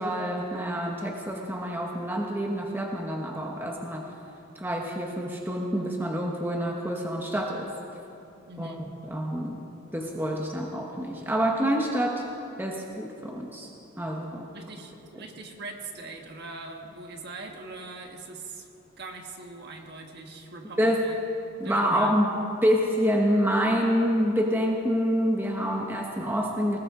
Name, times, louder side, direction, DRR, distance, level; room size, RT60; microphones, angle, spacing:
voice 1, 0.0-4.1 4.6-7.7 8.6-8.7 9.1-12.2 12.6-13.7 14.0-14.5 20.8-21.1 21.6-22.3 22.6-26.8, equal, 10° right, 0 dB, 1.1 m, -27 dB
voice 2, 8.5-8.9 14.5-18.7 19.0-21.2 21.6-22.1, right 3 dB, 50° right, 3 dB, 1.5 m, -41 dB
19.5 x 19.0 x 3.8 m, 2.8 s
head